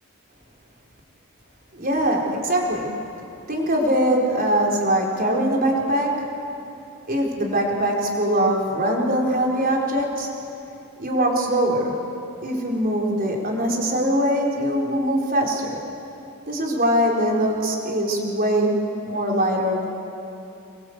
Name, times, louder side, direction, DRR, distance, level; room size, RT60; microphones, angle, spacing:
voice 1, 1.7-2.9 3.5-6.1 7.1-10.3 11.0-11.9 12.4-15.8 16.5-18.7 19.0-19.9, right 1 dB, 40° right, -1 dB, 4.6 m, -22 dB
25.5 x 23.5 x 8.2 m, 2.9 s
head